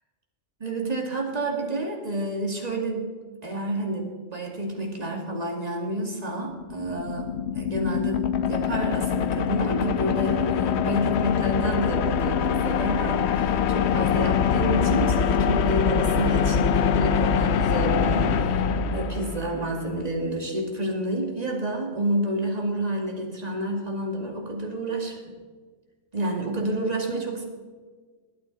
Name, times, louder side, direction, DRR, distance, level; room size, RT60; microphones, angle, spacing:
voice 1, 0.6-3.1 3.4-18.7 18.9-25.4 26.1-27.4, right 1 dB, 30° right, 1 dB, 2.1 m, -29 dB
sound 1, 6.5-19.7, left 7 dB, 65° left, 0.8 m, -24 dB
21.0 x 8.8 x 3.9 m, 1.5 s
omnidirectional pair, 1.3 m